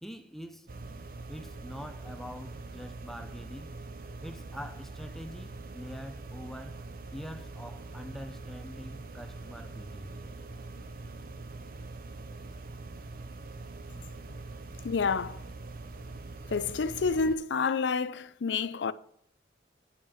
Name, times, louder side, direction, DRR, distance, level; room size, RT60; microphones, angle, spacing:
voice 1, 0.0-0.7 1.3-3.7 4.2-6.8 7.1-10.4, equal, ahead, 0.6 m, -44 dB
sound 1, 0.7-17.4, right 3 dB, 50° right, 0.6 m, -43 dB
voice 2, 14.8-15.5 16.5-18.9, left 5 dB, 70° left, 0.5 m, -29 dB
9.3 x 5.6 x 7.0 m
head